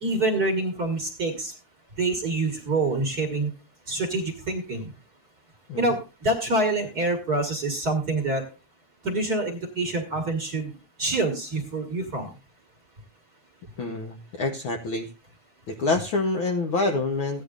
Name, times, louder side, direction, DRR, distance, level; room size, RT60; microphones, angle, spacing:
voice 1, 0.0-1.5 2.0-3.5 3.9-4.9 5.8-8.4 9.0-12.4, right 2 dB, 40° right, 3 dB, 1.5 m, -26 dB
voice 2, 13.8-15.1 15.7-17.4, left 3 dB, 65° left, 3 dB, 1.3 m, -27 dB
16.0 x 10.5 x 2.4 m, 0.30 s
omnidirectional pair, 3.3 m